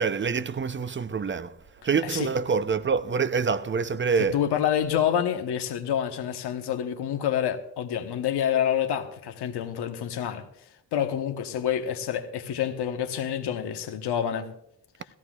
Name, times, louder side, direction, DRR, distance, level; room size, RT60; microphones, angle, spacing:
voice 1, 0.0-1.6 1.8-4.4, right 5 dB, 30° right, 0.7 m, -26 dB
voice 2, 4.3-10.4 10.9-14.5, left 9 dB, 80° left, 1.2 m, -27 dB
17.5 x 15.0 x 2.4 m
supercardioid pair, 55°, 39 cm